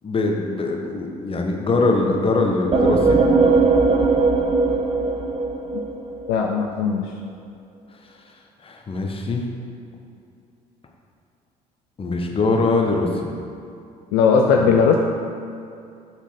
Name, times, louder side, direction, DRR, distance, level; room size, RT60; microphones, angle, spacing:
voice 1, 0.0-3.2 8.6-9.4 12.0-13.3, left 3 dB, 25° left, 2 dB, 1.1 m, -22 dB
sound 1, 2.7-6.3, right 4 dB, 30° right, 0.8 m, -19 dB
voice 2, 6.3-7.1 14.1-15.0, left 5 dB, 60° left, 2 dB, 0.5 m, -18 dB
7.9 x 4.4 x 5.1 m, 2.5 s
figure-of-eight pair, 50°, 20 cm